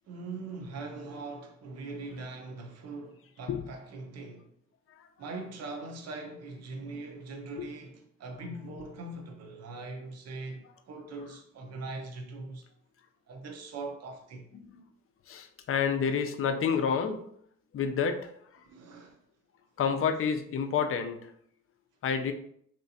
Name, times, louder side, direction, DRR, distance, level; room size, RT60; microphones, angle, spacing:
voice 1, 0.1-4.5 5.2-12.7 13.3-14.5 18.6-19.2, right 3 dB, 55° right, 0.7 m, -41 dB
voice 2, 15.3-17.2 17.7-18.3 19.8-21.3 22.0-22.3, left 6 dB, 45° left, 0.5 m, -29 dB
3.2 x 2.9 x 2.7 m
cardioid pair, 90°, 30 cm